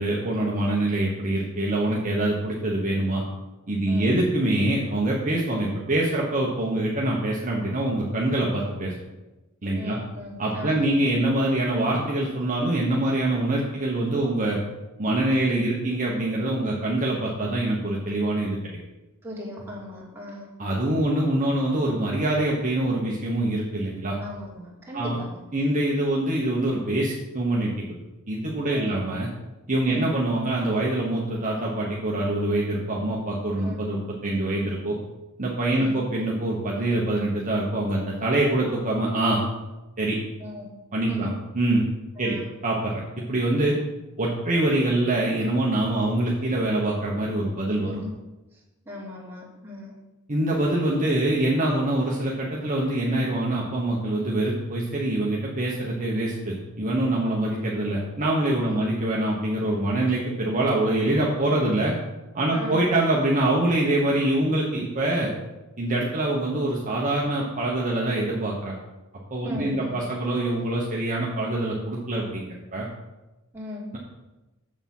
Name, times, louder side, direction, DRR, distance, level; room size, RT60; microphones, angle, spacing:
voice 1, 0.0-3.2 3.7-8.9 9.6-10.0 10.4-14.6 15.0-18.6 20.6-24.2 24.9-25.2 25.5-27.7 28.3-29.3 29.7-34.9 35.4-39.4 40.0-40.2 40.9-41.3 41.5-41.8 42.2-42.4 42.6-43.8 44.2-47.9 50.3-61.9 62.3-65.3 65.8-68.7 69.3-72.9, right 1 dB, 35° right, -3 dB, 1.2 m, -24 dB
voice 2, 9.7-11.0 19.2-20.5 24.2-25.7 28.7-29.0 29.8-30.0 33.6-33.8 35.7-36.0 40.4-40.7 41.1-41.3 42.2-42.5 47.7-48.1 48.5-49.9 57.2-57.4 58.6-58.9 62.5-62.9 69.4-70.0 73.5-73.9, left 1 dB, 10° right, -5 dB, 2.5 m, -37 dB
7.4 x 7.0 x 5.5 m, 1.1 s
head